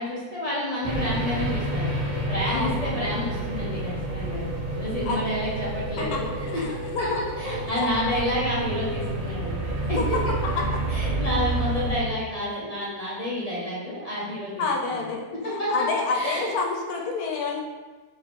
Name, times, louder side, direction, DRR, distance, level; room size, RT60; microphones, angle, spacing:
voice 1, 0.0-1.9 2.3-4.5 4.7-10.0 10.9-15.1 15.4-15.9 16.1-16.5 16.8-17.1, left 1 dB, 35° left, -7 dB, 0.6 m, -30 dB
sound 1, 0.8-12.0, right 2 dB, 80° right, 0.4 m, -29 dB
voice 2, 2.4-3.0 5.1-5.2 6.0-6.2 6.5-7.2 7.7-7.9 10.0-10.1 10.6-10.7 14.6-15.3 15.7-17.6, left 4 dB, 80° left, 0 dB, 1.1 m, -28 dB
3.0 x 2.9 x 4.1 m, 1.3 s
omnidirectional pair, 1.6 m